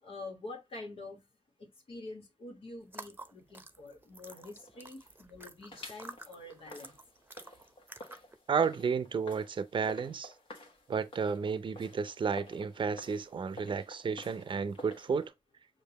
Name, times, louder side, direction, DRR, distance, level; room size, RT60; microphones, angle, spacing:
voice 1, 0.0-1.2 1.6-7.0, left 2 dB, 90° left, 1.4 m, -46 dB
sound 1, 2.8-8.4, right 2 dB, 20° right, 0.6 m, -50 dB
sound 2, 4.3-5.4 5.7-15.3, left 1 dB, 70° left, 1.3 m, -51 dB
voice 2, 8.5-10.3 10.9-15.3, right 6 dB, 60° right, 0.5 m, -32 dB
6.6 x 2.5 x 2.9 m
cardioid pair, 55°, 9 cm